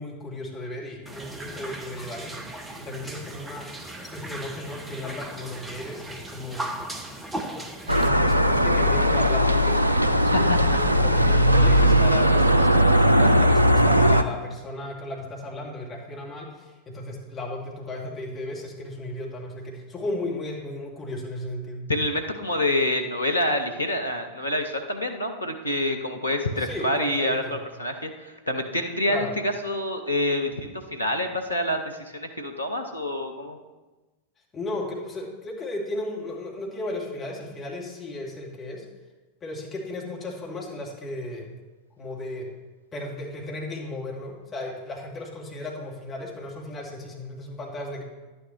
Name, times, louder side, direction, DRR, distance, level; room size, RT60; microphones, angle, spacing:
voice 1, 0.0-3.7 4.1-6.7 7.9-21.9 26.6-27.6 29.1-29.3 34.5-38.9 39.4-41.5 42.0-42.5 42.9-48.0, left 2 dB, 25° left, -2 dB, 2.3 m, -35 dB
sound 1, 1.1-8.1, right 1 dB, 10° right, 1.0 m, -37 dB
sound 2, 7.9-14.2, equal, 85° right, 0.4 m, -19 dB
voice 2, 10.2-10.8 21.9-33.6, left 1 dB, 85° left, 4 dB, 1.0 m, -27 dB
11.0 x 9.9 x 3.2 m, 1.2 s
figure-of-eight pair, 90°, 0 cm